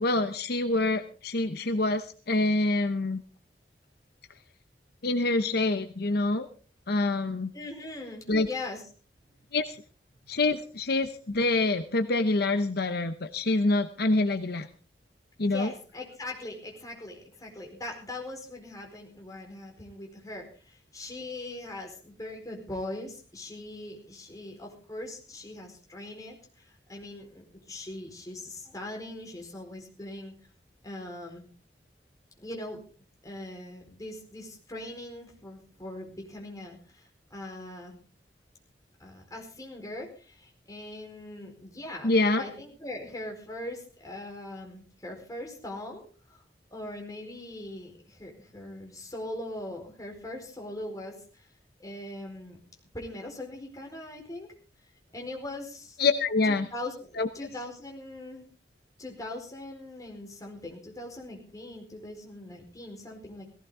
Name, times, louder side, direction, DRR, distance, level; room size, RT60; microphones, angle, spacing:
voice 1, 0.0-3.2 5.0-6.5 6.9-7.5 8.3-8.5 9.5-9.8 10.3-14.7 15.4-15.7 42.0-42.4 56.0-56.7 57.2-57.3, left 2 dB, 65° left, 9 dB, 0.9 m, -26 dB
voice 2, 7.5-8.8 9.2-9.3 15.5-30.3 30.8-31.5 32.4-32.8 33.2-38.0 39.0-46.0 46.3-46.4 46.7-51.5 51.8-52.6 52.9-54.5 55.1-56.0 56.5-58.4 59.0-63.5, left 1 dB, 20° left, 1 dB, 4.5 m, -41 dB
17.5 x 16.5 x 3.7 m, 0.38 s
head